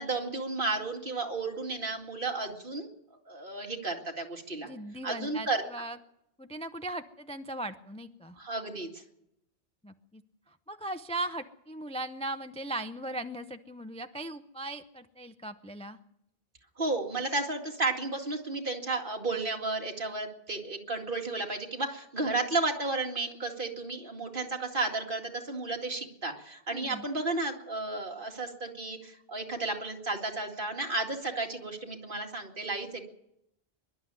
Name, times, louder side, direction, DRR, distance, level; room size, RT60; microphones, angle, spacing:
voice 1, 0.0-2.9 3.3-4.7 5.0-5.6 8.4-8.9 16.8-33.1, right 3 dB, 50° right, 1 dB, 2.5 m, -33 dB
voice 2, 4.6-6.0 6.4-8.4 9.8-10.2 10.5-16.0 26.7-27.0, right 1 dB, 5° left, 9 dB, 0.5 m, -38 dB
24.5 x 11.5 x 9.5 m, 0.81 s
omnidirectional pair, 1.1 m